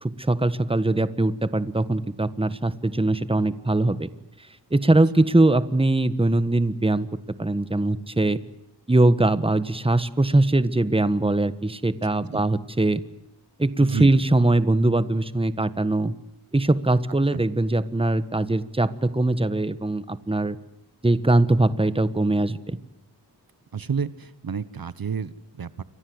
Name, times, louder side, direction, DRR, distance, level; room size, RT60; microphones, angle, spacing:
voice 1, 0.0-4.1 4.7-7.1 7.4-8.4 8.9-13.0 13.6-16.1 16.5-20.6 21.0-22.8, right 2 dB, 15° right, 13 dB, 1.5 m, -21 dB
voice 2, 13.8-14.1 17.3-17.4 23.7-25.8, right 6 dB, 60° right, 15 dB, 1.1 m, -30 dB
30.0 x 24.0 x 8.0 m, 0.81 s
wide cardioid pair, 80°, 40 cm